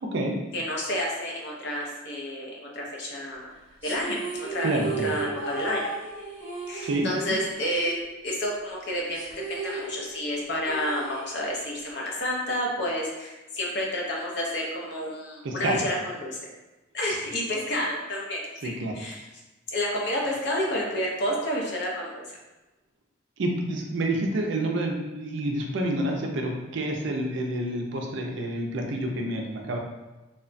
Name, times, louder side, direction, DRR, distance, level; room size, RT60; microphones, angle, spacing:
voice 1, 0.0-0.4 4.6-5.1 6.8-7.4 15.4-15.8 18.6-18.9 23.4-29.8, right 1 dB, 60° right, 1 dB, 0.4 m, -28 dB
voice 2, 0.5-3.5 3.8-5.9 6.7-16.4 16.9-19.3 19.7-22.2, left 1 dB, 55° left, -2 dB, 0.6 m, -30 dB
sound 1, 3.8-8.5 8.7-8.8 9.1-11.8, right 4 dB, 10° right, 0.9 m, -35 dB
2.8 x 2.1 x 2.5 m, 1.1 s
head